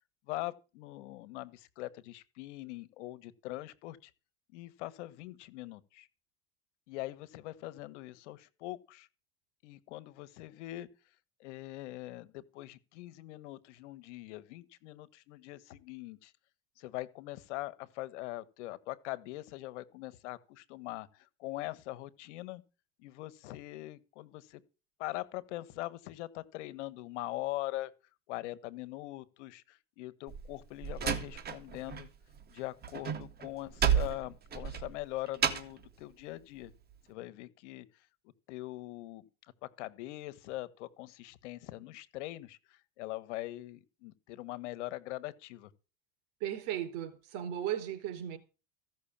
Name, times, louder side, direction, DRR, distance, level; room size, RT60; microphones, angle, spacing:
voice 1, 0.3-4.1 4.5-6.1 6.9-9.1 9.6-10.9 11.4-16.3 16.8-22.6 23.0-24.6 25.0-27.9 28.3-32.1 32.5-36.7 37.1-37.9 38.5-39.2 39.6-45.7, left 17 dB, 80° left, 1.4 m, -42 dB
Slam, 30.3-32.1 32.3-35.8, right 8 dB, 25° right, 1.9 m, -32 dB
voice 2, 46.4-48.4, right 11 dB, 60° right, 4.1 m, -36 dB
15.5 x 6.4 x 8.7 m
supercardioid pair, 135°, 35 cm